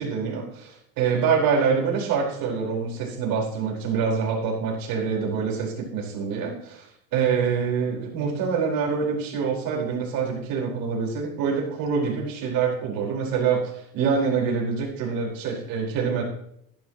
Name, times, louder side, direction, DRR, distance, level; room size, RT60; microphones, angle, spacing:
voice 1, 0.0-6.9 7.1-16.2, right 6 dB, 50° right, -2 dB, 4.8 m, -25 dB
12.5 x 11.5 x 3.1 m, 0.72 s
hypercardioid pair, 80°, 42 cm